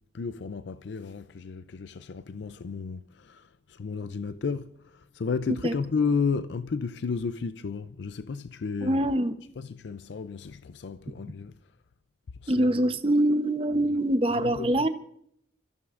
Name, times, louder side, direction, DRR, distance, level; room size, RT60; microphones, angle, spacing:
voice 1, 0.1-9.0 9.6-11.5 12.4-12.7 14.3-14.9, left 5 dB, 75° left, 0.4 m, -33 dB
voice 2, 8.8-9.3 12.5-14.9, right 1 dB, 30° right, 0.8 m, -24 dB
28.0 x 14.5 x 2.5 m
head